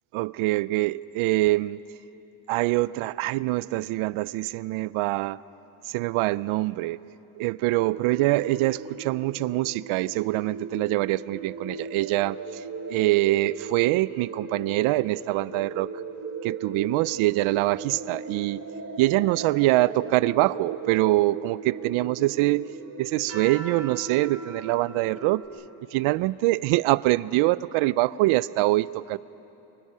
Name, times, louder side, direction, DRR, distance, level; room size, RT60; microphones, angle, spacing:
voice 1, 0.1-1.8 2.5-5.4 5.9-7.0 7.4-15.9 16.4-18.7 19.0-22.7 23.0-25.4 25.9-29.2, right 18 dB, 85° right, 18 dB, 0.5 m, -24 dB
sound 1, 7.8-25.4, right 4 dB, 30° right, 2.8 m, -38 dB
29.0 x 24.5 x 5.6 m, 2.9 s
cardioid pair, 170°, 48 cm